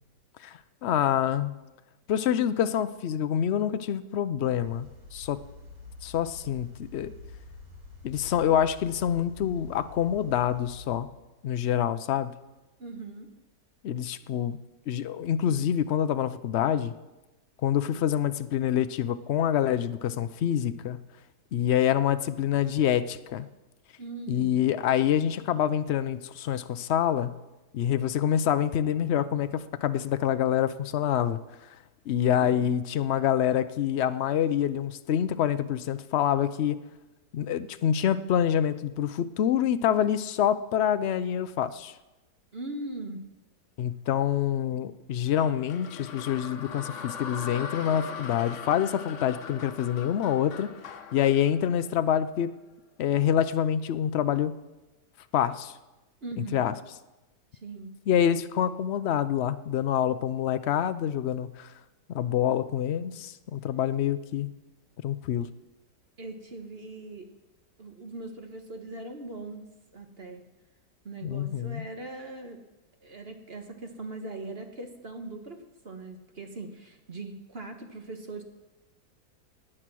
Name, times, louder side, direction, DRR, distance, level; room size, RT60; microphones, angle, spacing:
voice 1, 0.4-1.5 2.1-5.4 6.0-7.1 8.0-11.1 11.4-12.3 13.8-14.6 14.9-16.9 17.6-21.0 21.5-23.5 24.3-27.3 27.7-31.4 32.1-36.8 37.3-42.0 43.8-50.7 51.1-52.5 53.0-54.5 55.3-55.7 56.5-56.7 58.1-61.7 62.1-64.5 65.0-65.5 71.2-71.9, left 10 dB, 80° left, 12 dB, 0.5 m, -26 dB
sound 1, 4.6-11.0, left 3 dB, 80° right, 3.2 m, -47 dB
voice 2, 12.8-13.3 24.0-24.6 32.4-32.6 42.5-43.3 56.2-56.7 57.6-58.0 66.2-67.3 67.8-70.4 71.0-72.6 73.0-78.4, right 2 dB, 40° right, 5 dB, 1.5 m, -40 dB
sound 2, 45.4-52.5, left 6 dB, 50° left, 1.1 m, -41 dB
17.5 x 10.0 x 6.1 m, 1.1 s
omnidirectional pair, 1.8 m